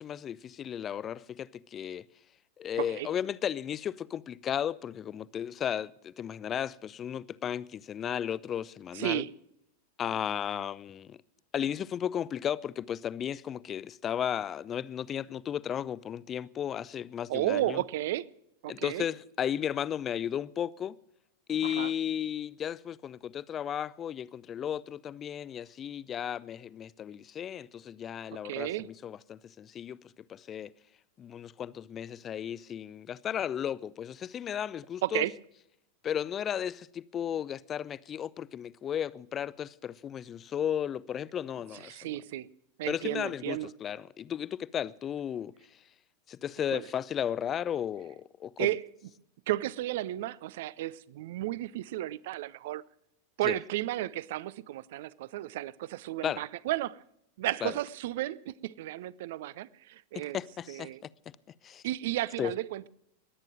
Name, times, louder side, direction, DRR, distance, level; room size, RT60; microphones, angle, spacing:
voice 1, 0.0-2.0 2.6-9.2 10.0-11.2 11.5-17.8 18.7-20.9 21.5-30.0 30.3-30.7 31.2-35.3 36.0-42.0 42.9-45.5 46.3-48.7 53.4-53.6 56.2-56.5 57.6-57.8 60.1-60.9 61.6-61.8 62.4-62.5, left 9 dB, 25° left, 0.5 m, -34 dB
voice 2, 2.8-3.1 8.9-9.3 17.3-18.3 18.6-19.1 21.6-21.9 28.4-28.9 35.0-35.4 41.7-42.5 42.8-43.7 46.7-46.9 48.6-48.9 49.5-52.8 53.4-57.0 57.4-60.4 60.7-61.0 61.8-62.9, right 15 dB, 55° right, 0.5 m, -33 dB
21.0 x 9.0 x 6.3 m
figure-of-eight pair, 90°, 0 cm